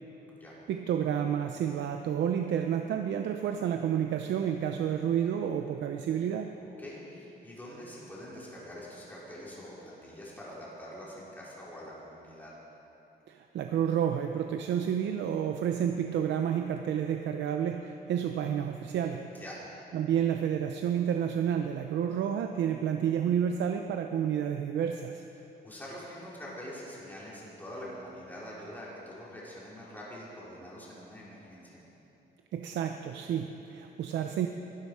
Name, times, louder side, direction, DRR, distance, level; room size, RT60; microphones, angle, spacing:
voice 1, 0.7-6.5 13.3-19.3 19.9-25.2 32.5-34.5, right 9 dB, 85° right, 5 dB, 0.7 m, -30 dB
voice 2, 6.6-12.5 19.3-19.6 25.6-31.8, equal, 10° left, -7 dB, 4.7 m, -45 dB
23.0 x 12.5 x 4.8 m, 2.9 s
cardioid pair, 135°, 18 cm